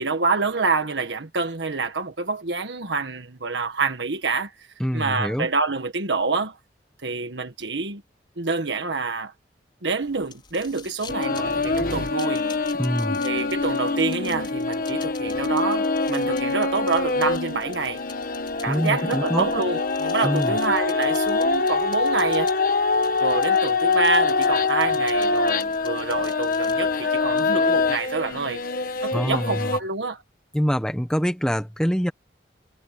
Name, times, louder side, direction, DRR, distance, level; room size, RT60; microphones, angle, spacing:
voice 1, 0.0-4.7 4.9-6.6 7.0-8.0 8.4-9.3 9.8-12.4 13.2-18.0 18.6-22.5 23.2-28.6 29.0-30.2, right 4 dB, 80° right, 1.5 m, -27 dB
voice 2, 4.8-5.5 12.7-13.2 18.7-19.5 20.2-20.5 29.1-29.8 30.5-32.1, equal, 5° left, 1.4 m, -25 dB
sound 1, 10.0-27.5, left 6 dB, 25° left, 5.5 m, -47 dB
sound 2, 11.1-29.8, left 3 dB, 50° left, 1.3 m, -24 dB
head